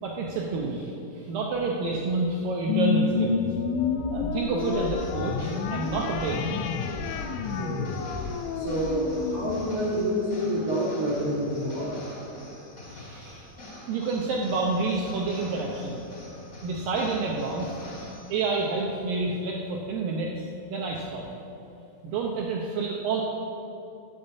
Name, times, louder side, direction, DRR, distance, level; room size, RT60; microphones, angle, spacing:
voice 1, 0.0-3.5 4.1-6.6 12.9-13.5 13.9-16.0 16.6-17.8 18.3-21.3 22.0-23.2, right 3 dB, 85° right, -1 dB, 1.9 m, -29 dB
sound 1, 2.7-11.4, left 5 dB, 90° left, 2.9 m, -30 dB
sound 2, 4.6-18.6, left 1 dB, 20° left, 2.7 m, -45 dB
voice 2, 7.4-7.9 8.5-12.0, right 1 dB, 70° right, -6 dB, 1.3 m, -28 dB
12.0 x 5.5 x 8.1 m, 2.7 s
omnidirectional pair, 5.2 m